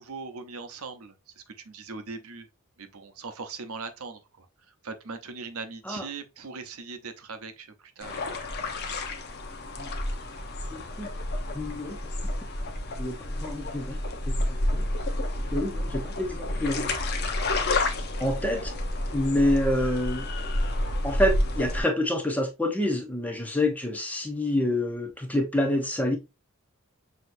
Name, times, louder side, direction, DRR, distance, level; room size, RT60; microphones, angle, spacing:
voice 1, 0.0-2.5 2.8-4.5 4.8-8.2, right 4 dB, 80° right, 0.7 m, -40 dB
sound 1, 8.0-21.8, left 1 dB, 50° left, 0.8 m, -30 dB
voice 2, 10.7-11.1 11.5-12.0 13.0-14.0 14.3-14.9 15.5-16.9 18.2-18.7 19.1-20.3 21.0-26.2, left 1 dB, 5° left, 0.7 m, -27 dB
6.2 x 2.9 x 2.6 m
head